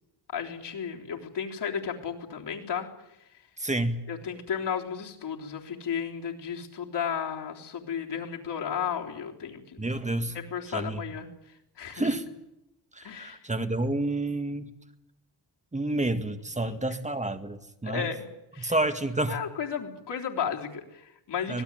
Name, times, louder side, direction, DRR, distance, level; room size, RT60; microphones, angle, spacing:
voice 1, 0.3-2.9 4.1-9.9 10.3-12.1 13.0-13.4 16.6-16.8 17.8-18.2 18.5-18.8 19.3-21.6, left 7 dB, 85° left, 1 dB, 3.7 m, -34 dB
voice 2, 3.6-4.0 9.8-10.4 10.7-11.0 11.9-12.3 12.9-14.7 15.7-18.1 18.6-19.4 21.5-21.6, right 2 dB, 15° right, 8 dB, 1.9 m, -29 dB
25.0 x 19.5 x 9.2 m, 0.88 s
wide cardioid pair, 120°, 40 cm